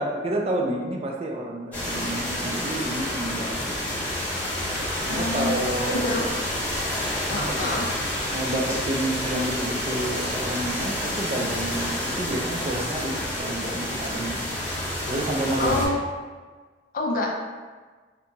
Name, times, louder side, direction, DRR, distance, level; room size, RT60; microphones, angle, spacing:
voice 1, 0.0-4.0 5.0-6.3 7.3-7.8 8.3-14.5 15.0-15.8, right 1 dB, 35° right, 0 dB, 0.3 m, -30 dB
sound 1, 1.7-15.9, left 1 dB, 10° left, 0.7 m, -29 dB
voice 2, 5.1-5.6 5.9-6.2 7.3-7.9 15.6-16.0 16.9-17.3, left 2 dB, 50° left, 1 dB, 0.3 m, -26 dB
2.8 x 2.2 x 2.6 m, 1.4 s
head